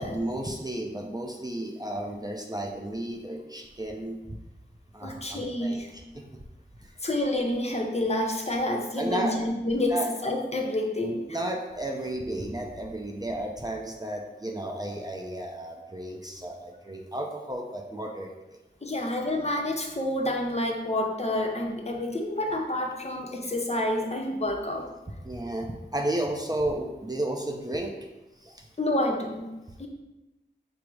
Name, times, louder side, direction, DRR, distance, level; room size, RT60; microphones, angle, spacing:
voice 1, 0.0-4.2 4.9-6.4 6.8-7.0 9.0-9.4 9.8-10.1 11.3-18.6 25.2-28.1 28.4-28.7, right 1 dB, 20° right, 1 dB, 0.5 m, -33 dB
voice 2, 5.0-5.9 7.0-11.2 18.8-24.9 28.8-29.5 29.8-29.9, left 1 dB, 35° left, 1 dB, 0.6 m, -28 dB
4.9 x 2.0 x 4.5 m, 1.0 s
wide cardioid pair, 50°, 19 cm